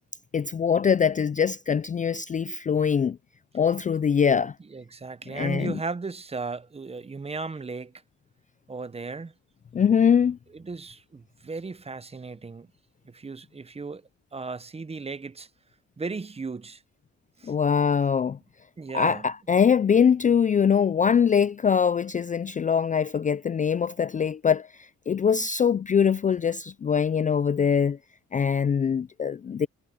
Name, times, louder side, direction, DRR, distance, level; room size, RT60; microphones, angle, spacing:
voice 1, 0.3-3.2 3.5-4.5 5.3-5.8 9.7-10.4 17.4-18.4 18.9-28.0 28.3-29.7, left 7 dB, 25° left, 0.4 m, -23 dB
voice 2, 4.7-7.9 8.7-9.3 10.0-10.1 10.5-12.7 13.0-14.0 14.3-15.5 16.0-16.8 17.4-17.5 18.8-19.3, right 4 dB, 20° right, 0.8 m, -36 dB
cardioid pair, 90°, 30 cm